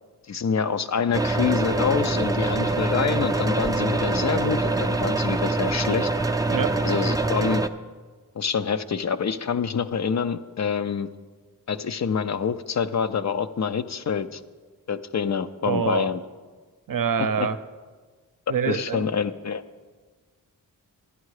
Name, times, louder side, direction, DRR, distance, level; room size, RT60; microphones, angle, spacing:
voice 1, 0.3-6.1 6.8-7.6 8.4-11.1 11.7-14.4 14.9-16.2 17.2-17.5 18.7-19.6, left 6 dB, 50° left, 11 dB, 0.5 m, -26 dB
sound 1, 1.1-7.7, right 2 dB, 10° right, 0.5 m, -24 dB
voice 2, 6.4-6.9 15.7-16.1 16.9-17.6 18.5-19.1, right 7 dB, 60° right, 10 dB, 0.7 m, -25 dB
10.5 x 10.0 x 4.8 m, 1.4 s
cardioid pair, 55°, 37 cm